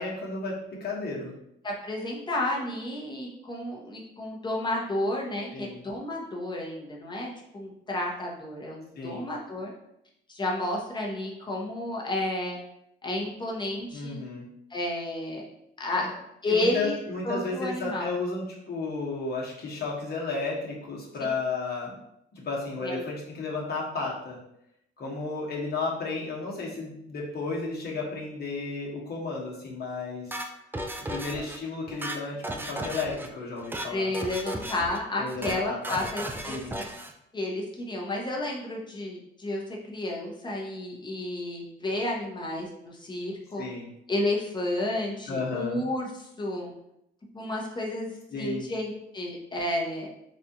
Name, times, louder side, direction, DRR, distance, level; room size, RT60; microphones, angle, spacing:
voice 1, 0.0-1.3 5.5-5.8 9.0-9.2 13.9-14.4 16.0-16.1 16.5-21.9 22.3-24.4 25.0-30.4 31.1-34.1 35.2-36.1 36.5-36.8 43.6-43.9 45.3-45.8 48.3-48.7, left 3 dB, 55° left, -3 dB, 1.2 m, -33 dB
voice 2, 1.6-9.7 10.3-12.6 13.0-14.2 14.7-15.5 15.8-16.1 16.4-17.0 17.2-18.1 22.8-23.0 33.9-36.9 37.3-39.6 39.9-43.6 44.1-46.7 47.3-50.1, left 1 dB, 20° left, -2 dB, 0.9 m, -31 dB
sound 1, 30.3-31.6 31.9-33.3 33.6-33.9 34.1-35.0 35.3-35.6 35.8-37.1, right 1 dB, 10° right, 0.4 m, -35 dB
4.1 x 2.4 x 2.8 m, 0.79 s
cardioid pair, 90°, 20 cm